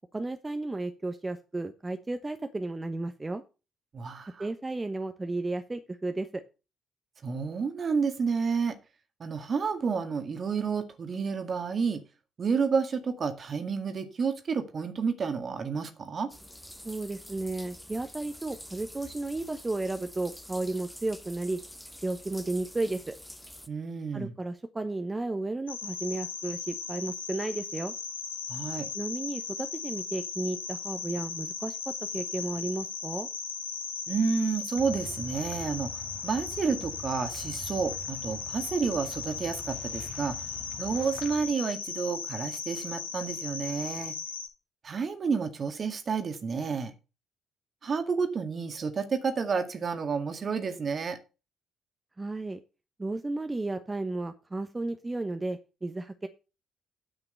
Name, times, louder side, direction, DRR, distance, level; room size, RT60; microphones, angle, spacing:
voice 1, 0.1-3.4 4.4-6.4 16.8-21.6 22.0-23.1 24.1-27.9 28.9-33.3 52.2-52.6 53.0-56.3, right 2 dB, 20° right, 1.1 m, -33 dB
voice 2, 3.9-4.5 7.2-8.8 9.2-12.0 12.4-16.3 23.7-24.3 28.5-28.9 34.1-40.4 40.8-44.2 44.8-46.9 47.8-51.2, right 5 dB, 45° right, 1.9 m, -30 dB
sound 1, 16.3-23.7, equal, 5° left, 1.4 m, -47 dB
sound 2, 25.7-44.5, left 6 dB, 90° left, 1.0 m, -37 dB
sound 3, 34.8-41.5, left 4 dB, 45° left, 2.0 m, -45 dB
9.4 x 5.7 x 6.7 m
hypercardioid pair, 45°, 0 cm